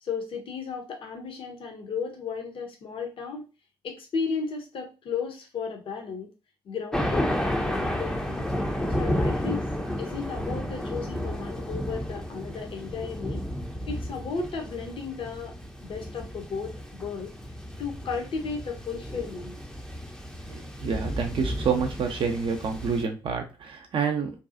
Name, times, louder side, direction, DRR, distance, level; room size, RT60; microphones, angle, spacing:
voice 1, 0.0-3.4 3.8-6.3 6.6-8.5 9.0-9.7 10.0-13.4 13.9-15.5 15.8-17.3 17.8-19.6, left 5 dB, 45° left, 3 dB, 0.8 m, -34 dB
Thunder, 6.9-23.0, equal, 5° left, 0.6 m, -32 dB
voice 2, 20.5-24.3, right 6 dB, 45° right, 4 dB, 0.6 m, -28 dB
2.7 x 2.3 x 2.5 m, 0.30 s
figure-of-eight pair, 40°, 12 cm